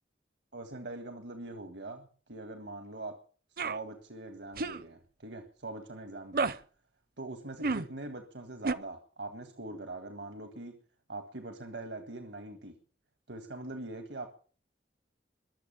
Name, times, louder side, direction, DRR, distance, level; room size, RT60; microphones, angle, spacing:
voice 1, 0.5-3.2 3.5-6.6 7.2-10.8 11.1-12.8 13.3-14.3, right 2 dB, 85° right, 1.7 m, -42 dB
sound 1, 3.6-3.8 4.6-4.8 6.3-6.6 7.6-7.9 8.6-8.7, right 4 dB, 55° right, 0.7 m, -30 dB
22.0 x 7.3 x 7.1 m
head